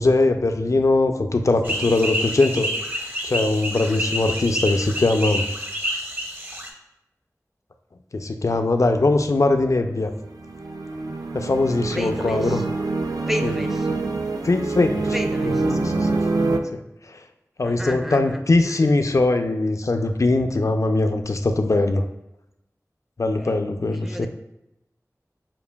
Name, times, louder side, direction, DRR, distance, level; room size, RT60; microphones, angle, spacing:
voice 1, 0.0-2.7 3.2-5.5 8.1-10.1 11.3-12.6 13.4-13.5 14.4-15.1 15.8-16.1 16.7-17.2 17.6-22.0 23.2-24.3, left 2 dB, 60° left, 7 dB, 0.4 m, -21 dB
sound 1, 1.6-6.7, equal, 35° right, 0.7 m, -28 dB
sound 2, 10.0-16.6, right 3 dB, 85° right, 0.3 m, -25 dB
voice 2, 11.9-12.6 13.2-13.9 15.1-15.7 17.6-18.9 23.4-23.6 23.9-24.3, equal, 5° right, 5 dB, 0.4 m, -32 dB
7.0 x 2.5 x 2.2 m, 0.87 s
wide cardioid pair, 45°, 6 cm